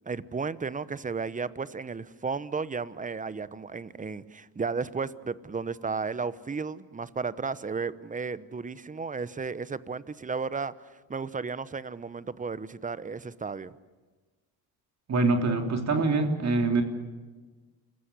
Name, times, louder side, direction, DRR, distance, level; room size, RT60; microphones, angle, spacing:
voice 1, 0.0-13.7, right 4 dB, 20° right, 17 dB, 1.0 m, -34 dB
voice 2, 15.1-16.8, right 3 dB, 45° right, 5 dB, 3.4 m, -24 dB
28.0 x 15.5 x 9.9 m, 1.3 s
cardioid pair, 95°, 38 cm